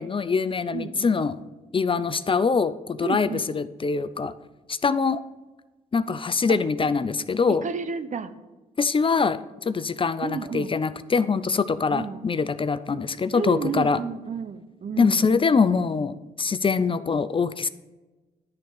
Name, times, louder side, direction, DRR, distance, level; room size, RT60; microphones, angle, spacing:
voice 1, 0.0-1.4 1.7-4.3 4.7-5.2 5.9-7.6 8.8-14.0 15.0-17.7, left 5 dB, 35° left, 14 dB, 0.4 m, -24 dB
voice 2, 0.7-1.1 3.0-3.5 7.6-8.3 10.2-10.7 11.9-12.3 13.3-15.3, right 5 dB, 50° right, 11 dB, 0.7 m, -32 dB
10.5 x 3.8 x 7.1 m, 1.2 s
supercardioid pair, 55°, 16 cm